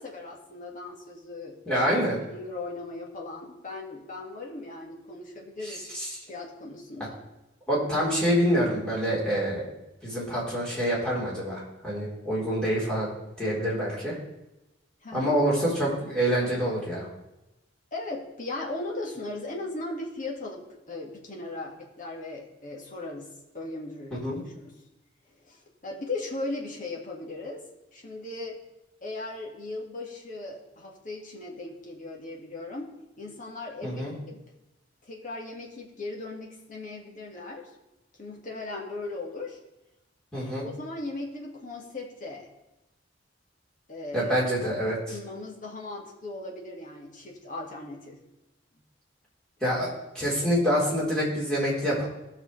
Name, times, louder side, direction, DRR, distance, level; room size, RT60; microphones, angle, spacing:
voice 1, 0.0-1.9 2.3-5.8 6.3-7.2 15.0-15.3 17.9-24.8 25.4-27.7 27.9-28.6 29.0-34.4 35.0-37.7 38.2-39.6 40.6-42.5 43.9-44.3 45.1-48.2, left 2 dB, 45° left, -1 dB, 1.9 m, -38 dB
voice 2, 1.7-2.2 5.9-6.1 7.7-9.6 10.0-14.1 15.1-17.1 24.1-24.4 33.8-34.1 40.3-40.6 44.1-45.0 49.6-49.9 50.1-52.1, equal, 5° left, -8 dB, 3.9 m, -26 dB
17.0 x 6.3 x 3.3 m, 0.95 s
head